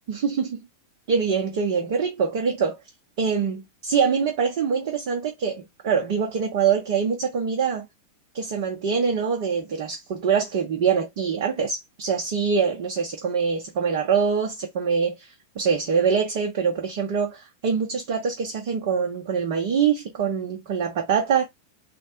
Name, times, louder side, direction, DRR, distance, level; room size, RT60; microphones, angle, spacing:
voice 1, 0.1-0.6 1.1-2.8 3.2-7.9 8.3-21.5, right 6 dB, 50° right, 0.7 m, -24 dB
3.2 x 2.1 x 2.8 m
figure-of-eight pair, 90°, 0 cm